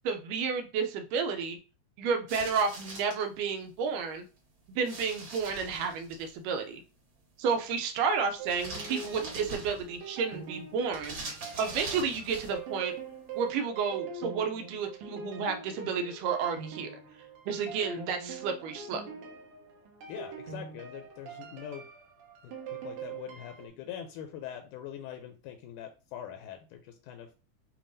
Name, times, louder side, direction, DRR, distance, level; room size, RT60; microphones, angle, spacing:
voice 1, 0.0-1.6 2.0-4.3 4.8-6.8 7.4-11.2 11.6-12.9 13.4-16.9 17.5-19.0, right 5 dB, 90° right, 5 dB, 2.3 m, -31 dB
sound 1, 2.3-3.2 4.8-6.3 8.5-10.0 10.9-12.6, right 2 dB, 40° right, 2.2 m, -42 dB
sound 2, 8.4-23.7, right 6 dB, 70° right, 2.1 m, -43 dB
voice 2, 20.1-21.9 22.4-27.3, left 10 dB, 80° left, 6 dB, 2.0 m, -43 dB
7.1 x 2.7 x 2.6 m, 0.33 s
omnidirectional pair, 3.7 m